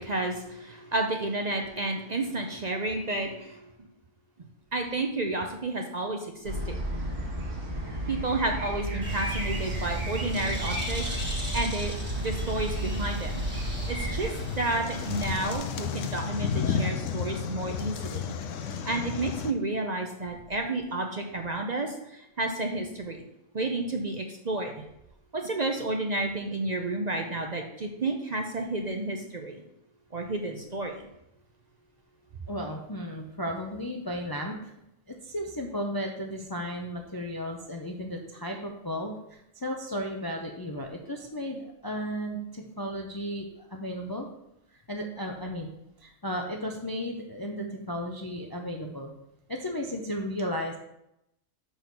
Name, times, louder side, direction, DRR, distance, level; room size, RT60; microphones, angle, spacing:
voice 1, 0.0-3.7 4.7-6.8 8.1-11.0 11.5-13.4 13.9-14.3 14.6-18.3 18.9-23.2 23.5-24.7 25.3-29.6 30.1-31.1, right 2 dB, 45° right, 3 dB, 0.6 m, -31 dB
sound 1, 6.4-14.3, equal, 65° right, 1.9 m, -33 dB
Bird, 9.0-15.6, right 2 dB, 10° right, 1.4 m, -37 dB
sound 2, 14.3-19.5, left 7 dB, 75° left, 0.9 m, -32 dB
voice 2, 32.5-34.7 35.1-44.3 44.9-45.7 46.0-49.1 49.5-50.8, equal, 30° left, 2 dB, 0.4 m, -34 dB
6.0 x 4.8 x 5.3 m, 0.83 s
omnidirectional pair, 1.3 m